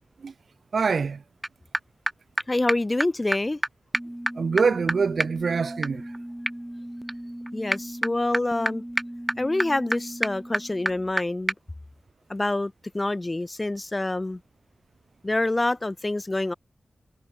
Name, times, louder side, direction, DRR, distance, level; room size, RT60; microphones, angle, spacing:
voice 1, 0.7-1.2 4.4-6.0, right 5 dB, 75° right, 3.5 m, -24 dB
sound 1, 1.4-1.5 1.7-1.8 2.1-2.2 2.4-2.5 2.7-2.8 3.0-3.1 3.3-3.4 3.6-3.7 3.9-11.2 11.5-11.6, right 1 dB, 10° right, 1.2 m, -30 dB
voice 2, 2.5-3.6 7.5-8.8 9.4-11.5 12.3-14.4 15.2-16.5, left 2 dB, 25° left, 1.5 m, -26 dB
wide cardioid pair, 90°, 0 cm